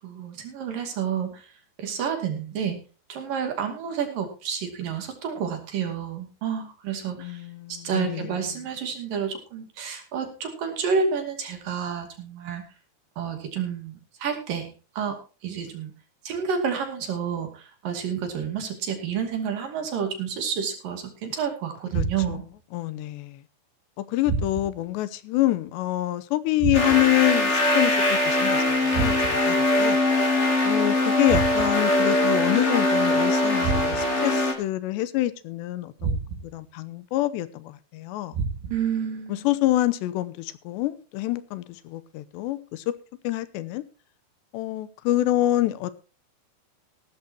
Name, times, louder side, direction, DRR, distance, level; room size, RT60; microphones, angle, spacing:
voice 1, 0.0-1.5 1.8-2.8 3.1-7.5 7.8-12.6 13.2-14.7 15.0-15.9 16.2-22.4 38.7-39.5, right 7 dB, 55° right, 3.9 m, -30 dB
voice 2, 7.2-8.4 21.9-22.4 22.7-23.4 24.0-30.0 30.6-36.2 36.5-38.4 39.3-42.9 43.2-43.8 44.5-45.9, left 15 dB, 85° left, 3.1 m, -27 dB
sound 1, 21.9-22.5 24.3-24.9 26.6-27.2 28.9-29.6 31.3-31.9 33.6-34.3 36.0-36.6 38.3-38.9, right 5 dB, 75° right, 4.8 m, -29 dB
sound 2, 26.7-34.5, left 2 dB, 20° left, 2.3 m, -22 dB
17.0 x 13.0 x 2.9 m
omnidirectional pair, 4.9 m